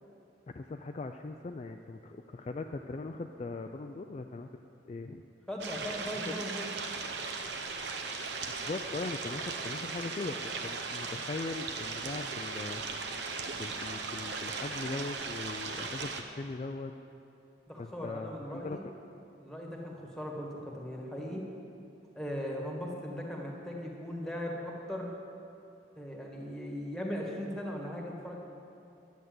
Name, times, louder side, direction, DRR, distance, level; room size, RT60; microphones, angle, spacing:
voice 1, 0.5-4.5 4.9-5.2 8.5-12.8 13.5-16.9 17.8-18.9, left 3 dB, 35° left, 5 dB, 0.3 m, -40 dB
voice 2, 5.5-6.7 7.4-7.5 17.7-18.9 19.4-21.4 22.1-25.1 25.9-28.4, equal, 5° left, -1 dB, 1.5 m, -38 dB
sound 1, 5.6-16.2, right 4 dB, 65° right, 0.9 m, -38 dB
11.0 x 8.1 x 7.6 m, 2.7 s
head